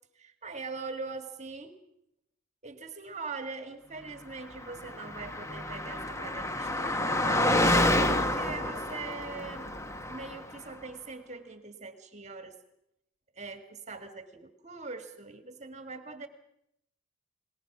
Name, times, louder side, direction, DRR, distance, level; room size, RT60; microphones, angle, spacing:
voice 1, 0.2-1.8 2.6-9.7 10.1-12.6 13.4-16.3, right 4 dB, 35° right, 8 dB, 1.7 m, -42 dB
Car passing by, 4.6-10.5, left 1 dB, 15° left, 1.3 m, -28 dB
29.5 x 20.0 x 6.1 m, 0.80 s
head